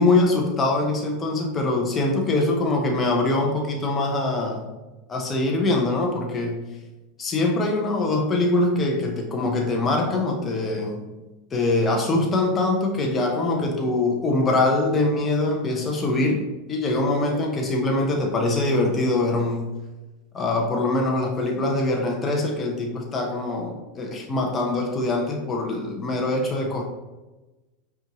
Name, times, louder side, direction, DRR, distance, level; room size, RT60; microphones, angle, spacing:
voice 1, 0.0-4.6 5.1-6.6 7.2-11.0 11.5-16.4 16.7-19.7 20.3-26.8, left 2 dB, 25° left, 0 dB, 0.7 m, -23 dB
5.2 x 2.5 x 2.9 m, 1.1 s
hypercardioid pair, 90°, 0 cm